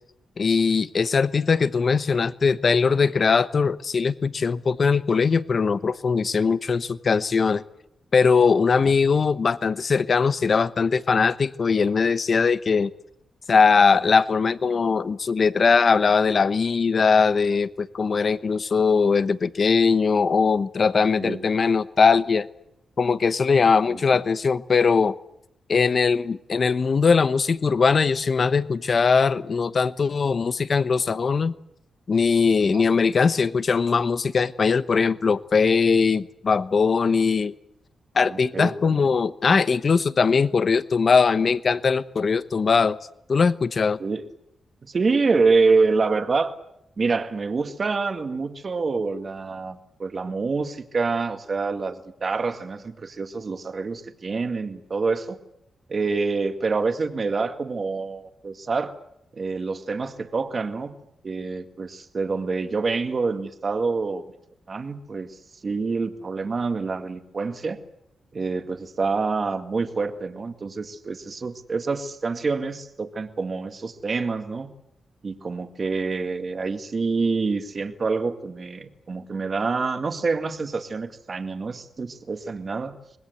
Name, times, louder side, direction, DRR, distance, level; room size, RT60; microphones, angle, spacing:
voice 1, 0.4-7.6 8.1-12.9 13.5-22.5 23.0-25.1 25.7-31.5 32.1-37.5 38.1-43.0 43.3-44.0, left 5 dB, 45° left, 14 dB, 1.0 m, -20 dB
voice 2, 38.3-39.1 44.0-44.2 44.8-46.5 47.0-55.4 55.9-58.9 59.3-60.9 61.2-64.2 64.7-65.4 65.6-67.8 68.3-74.7 75.2-83.0, right 4 dB, 40° right, 7 dB, 2.0 m, -26 dB
25.0 x 20.5 x 8.1 m, 0.78 s
wide cardioid pair, 115°, 0 cm